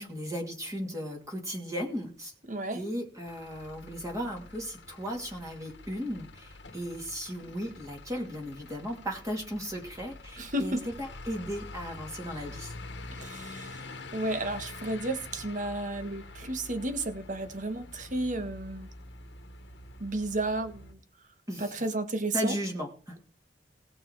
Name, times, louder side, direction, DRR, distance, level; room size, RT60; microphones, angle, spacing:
voice 1, 0.0-2.3 2.7-12.7 21.5-21.8 22.3-23.2, equal, 20° right, 0 dB, 2.7 m, -36 dB
voice 2, 2.5-2.8 10.4-10.8 13.1-18.9 20.0-21.0 21.6-22.5, right 2 dB, 45° right, 8 dB, 1.6 m, -33 dB
Truck / Idling, 3.2-20.9, left 2 dB, 75° left, 1.5 m, -46 dB
18.5 x 6.2 x 4.7 m, 0.37 s
head